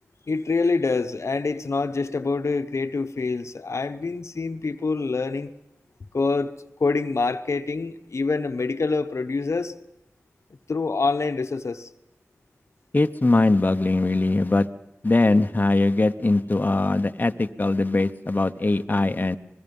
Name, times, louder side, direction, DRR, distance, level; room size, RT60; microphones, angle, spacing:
voice 1, 0.3-5.5 6.1-6.5 6.8-9.7 10.7-11.9, left 4 dB, 75° left, 9 dB, 0.9 m, -25 dB
voice 2, 12.9-14.7 15.0-19.4, left 2 dB, 35° left, 7 dB, 0.9 m, -21 dB
26.0 x 20.5 x 5.4 m, 0.85 s
cardioid pair, 40°, 5 cm